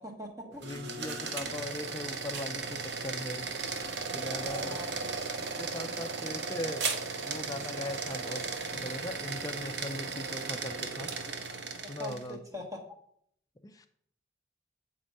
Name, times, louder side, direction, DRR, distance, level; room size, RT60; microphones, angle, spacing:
voice 1, 0.0-0.6 4.2-5.3 11.8-12.8, left 1 dB, 15° right, 2 dB, 1.2 m, -43 dB
sound 1, 0.5-12.3, right 4 dB, 65° right, 0.8 m, -36 dB
voice 2, 0.6-3.5 4.1-4.8 5.4-6.9 7.2-8.4 8.7-11.1 11.9-12.4 13.6-13.9, left 1 dB, 20° left, 9 dB, 0.4 m, -40 dB
7.5 x 4.3 x 5.3 m, 0.68 s
head